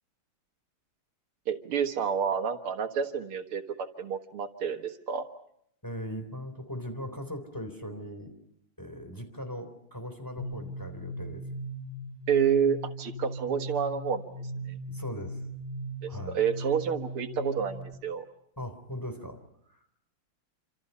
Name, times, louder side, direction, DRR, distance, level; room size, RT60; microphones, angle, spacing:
voice 1, 1.5-5.2 12.3-14.2 14.7-14.8 16.0-18.2, right 7 dB, 90° right, 7 dB, 2.4 m, -29 dB
voice 2, 5.8-8.3 8.8-11.4 14.9-15.4 16.1-16.4 18.6-19.4 19.7-19.9, equal, 10° left, 6 dB, 3.5 m, -39 dB
sound 1, 10.4-17.9, right 1 dB, 40° right, 5.0 m, -38 dB
28.0 x 27.0 x 5.6 m, 0.72 s
omnidirectional pair, 2.3 m